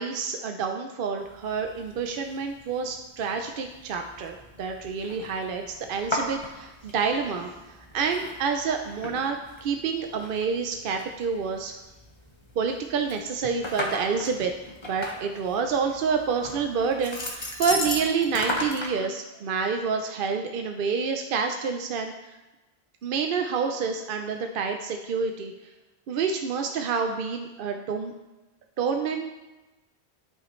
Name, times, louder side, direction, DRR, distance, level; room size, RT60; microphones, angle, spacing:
voice 1, 0.0-7.5 7.9-11.7 12.6-14.5 14.9-22.1 23.0-25.5 26.1-28.1 28.8-29.3, right 5 dB, 60° right, 4 dB, 0.7 m, -28 dB
sound 1, 1.2-18.9, left 1 dB, 25° left, 1.0 m, -37 dB
11.0 x 5.6 x 3.1 m, 1.1 s
omnidirectional pair, 1.1 m